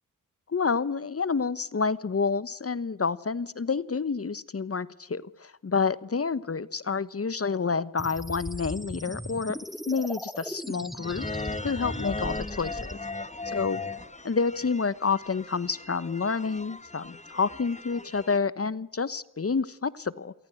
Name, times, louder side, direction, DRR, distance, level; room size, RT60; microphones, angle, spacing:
voice 1, 0.5-9.6 9.9-11.3 11.6-13.0 13.5-13.8 14.2-20.3, left 5 dB, 45° left, 18 dB, 1.1 m, -29 dB
sound 1, 8.0-12.9, equal, ahead, 2.2 m, -38 dB
sound 2, 11.0-18.4, left 3 dB, 20° left, 1.4 m, -38 dB
28.5 x 23.5 x 7.8 m, 0.85 s
cardioid pair, 60°, 33 cm